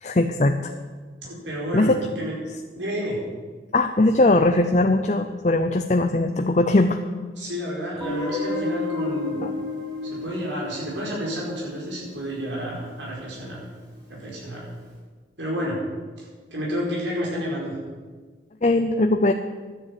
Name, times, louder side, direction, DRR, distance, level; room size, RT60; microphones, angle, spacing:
voice 1, 0.0-0.7 1.7-2.0 3.7-7.0 9.4-9.5 18.6-19.3, left 2 dB, 40° left, 6 dB, 0.6 m, -20 dB
voice 2, 1.3-2.3 2.7-3.2 7.4-9.5 10.0-13.6 14.1-14.7 15.4-15.8 16.2-17.7, equal, 80° right, -5 dB, 5.0 m, -30 dB
Guitar, 8.0-12.9, left 2 dB, 20° right, 6.3 m, -32 dB
13.0 x 10.0 x 8.6 m, 1.4 s
head